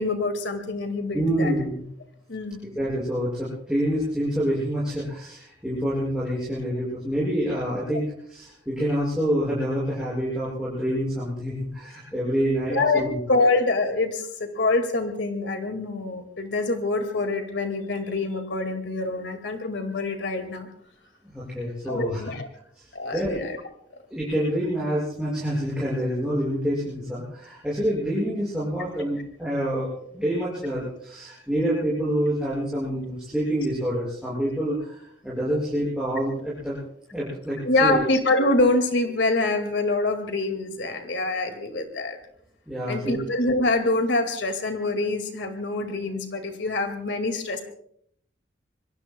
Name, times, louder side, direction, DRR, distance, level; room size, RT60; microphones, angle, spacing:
voice 1, 0.0-1.5 2.3-2.6 12.7-20.7 21.9-22.5 22.9-23.6 37.7-42.2 42.9-47.6, left 2 dB, 75° left, 6 dB, 2.1 m, -25 dB
voice 2, 1.1-1.8 2.7-13.2 21.2-22.2 22.8-23.4 24.1-36.8 37.1-38.0 42.7-43.1, equal, 5° right, -8 dB, 6.2 m, -27 dB
26.0 x 22.5 x 2.3 m, 0.67 s
head